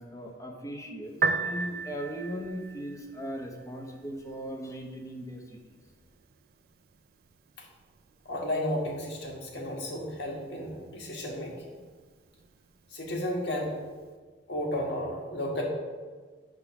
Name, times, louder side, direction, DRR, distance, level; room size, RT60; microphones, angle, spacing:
voice 1, 0.0-5.8, equal, 20° left, 2 dB, 0.9 m, -38 dB
Piano, 1.1-14.1, right 4 dB, 60° right, 0.4 m, -40 dB
voice 2, 8.3-11.7 12.9-13.7 14.5-15.6, left 1 dB, 75° left, -1 dB, 1.5 m, -33 dB
8.3 x 3.8 x 5.8 m, 1.5 s
head